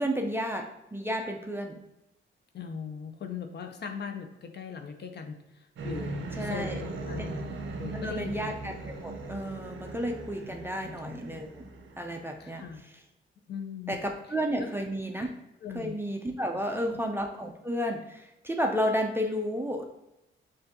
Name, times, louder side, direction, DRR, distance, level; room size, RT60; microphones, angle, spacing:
voice 1, 0.0-1.8 6.4-6.8 7.2-7.3 7.9-11.7 12.0-12.6 13.9-15.3 15.7-19.9, equal, 10° right, 2 dB, 0.4 m, -32 dB
voice 2, 2.5-7.4 7.8-8.5 10.5-10.6 10.8-11.2 12.4-12.8 13.5-14.0 14.6-14.7 15.1-15.3 15.6-16.0 16.7-17.0, left 6 dB, 55° left, 5 dB, 0.6 m, -40 dB
sound 1, 5.7-12.8, right 2 dB, 70° right, 0.7 m, -39 dB
6.5 x 2.5 x 2.8 m, 0.89 s
wide cardioid pair, 140°, 21 cm